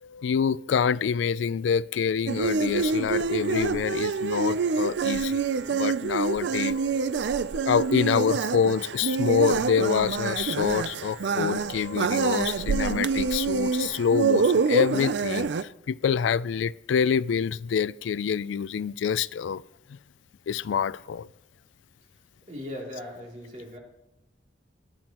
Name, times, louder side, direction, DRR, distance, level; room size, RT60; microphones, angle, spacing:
voice 1, 0.0-5.4 5.7-6.9 7.6-19.6 20.5-21.3, left 7 dB, 85° left, 0.3 m, -26 dB
sound 1, 2.3-15.6, right 5 dB, 75° right, 0.4 m, -26 dB
voice 2, 22.5-23.8, left 1 dB, 40° right, 2.9 m, -38 dB
21.5 x 10.5 x 3.0 m
head